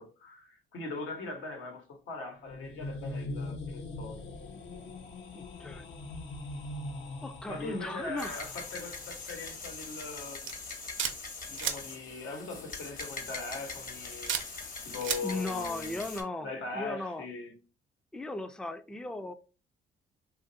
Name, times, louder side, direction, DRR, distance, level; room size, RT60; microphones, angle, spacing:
voice 1, 0.0-4.2 7.5-10.5 11.5-14.4 14.8-16.0 16.4-17.6, left 3 dB, 85° left, 1.2 m, -40 dB
sound 1, 2.3-9.3, left 2 dB, 70° left, 0.7 m, -41 dB
voice 2, 5.3-5.8 7.2-8.5 15.2-16.5 16.7-17.3 18.1-19.3, left 2 dB, 5° left, 0.3 m, -37 dB
sound 2, 8.2-16.2, left 4 dB, 45° left, 1.0 m, -42 dB
sound 3, 10.5-11.1 11.6-11.8 13.0-13.3 14.3-14.4 15.0-15.2, right 9 dB, 70° right, 0.5 m, -32 dB
3.1 x 2.5 x 2.6 m
cardioid pair, 90°, 20 cm